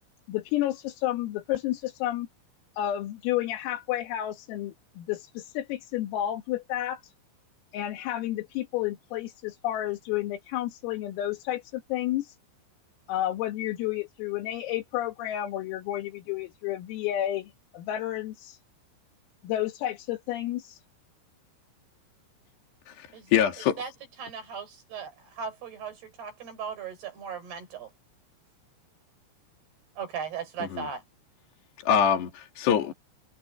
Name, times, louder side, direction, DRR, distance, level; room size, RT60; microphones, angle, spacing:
voice 1, 0.3-2.3 2.8-7.0 7.7-12.4 13.1-18.6 19.4-20.8, left 13 dB, 85° left, 4.6 m, -31 dB
voice 2, 22.9-23.8 30.6-30.9 31.9-32.9, left 8 dB, 60° left, 4.5 m, -25 dB
voice 3, 24.2-27.9 30.0-31.0, right 6 dB, 50° right, 7.1 m, -37 dB
omnidirectional pair, 5.9 m